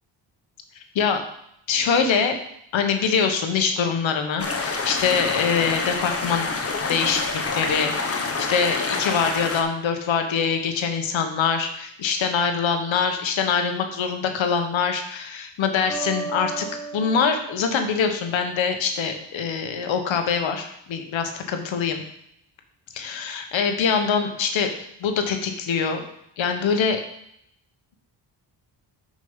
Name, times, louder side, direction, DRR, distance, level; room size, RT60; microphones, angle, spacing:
voice 1, 1.7-2.3 2.7-6.5 6.9-16.7 16.9-22.0 22.9-24.7 25.0-26.0 26.4-27.0, left 6 dB, 85° left, 6 dB, 1.2 m, -24 dB
sound 1, 4.4-9.6, left 4 dB, 30° left, 1.0 m, -27 dB
sound 2, 15.9-18.7, right 4 dB, 5° left, 2.3 m, -35 dB
6.5 x 5.3 x 5.6 m, 0.75 s
wide cardioid pair, 125°, 45 cm